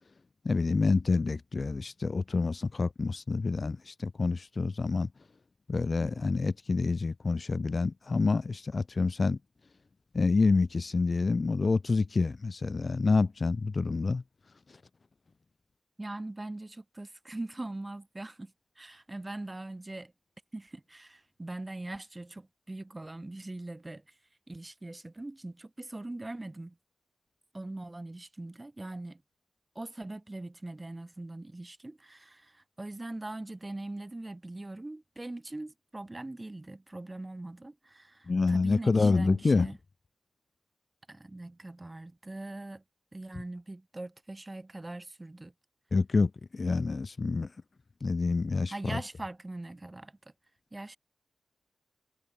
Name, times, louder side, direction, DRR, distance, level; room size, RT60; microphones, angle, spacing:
voice 1, 0.4-5.1 5.7-9.4 10.1-14.2 14.7-14.8 38.3-39.7 45.9-47.5 48.0-49.0, left 4 dB, 40° left, 1.2 m, -27 dB
voice 2, 16.0-20.1 20.5-24.1 24.5-26.8 27.5-29.2 29.7-39.8 41.1-42.8 43.1-45.5 48.7-50.2 50.7-51.0, right 2 dB, 20° right, 2.8 m, -41 dB
wide cardioid pair, 145°, 0 cm